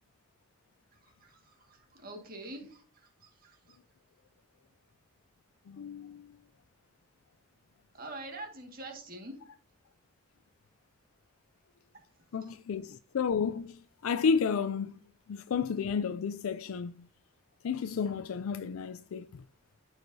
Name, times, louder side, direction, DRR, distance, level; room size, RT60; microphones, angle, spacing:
voice 1, 0.9-3.8 7.9-9.4 12.5-12.6, right 2 dB, 45° right, 1.8 m, -46 dB
voice 2, 5.7-6.3 12.3-14.9 15.3-17.1 17.6-19.4, left 6 dB, 80° left, 0.4 m, -32 dB
13.0 x 4.8 x 2.7 m
head